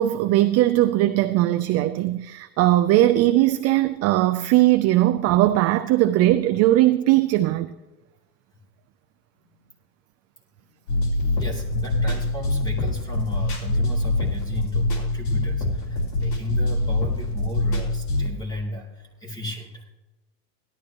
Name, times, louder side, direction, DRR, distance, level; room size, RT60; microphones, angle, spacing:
voice 1, 0.0-7.7, right 15 dB, 35° right, 0.4 m, -19 dB
voice 2, 9.4-9.7 10.6-11.1 11.3-19.8, left 1 dB, 10° left, 2.8 m, -35 dB
sound 1, 10.9-18.3, left 2 dB, 85° left, 3.1 m, -24 dB
17.5 x 12.5 x 2.9 m
supercardioid pair, 140°, 44 cm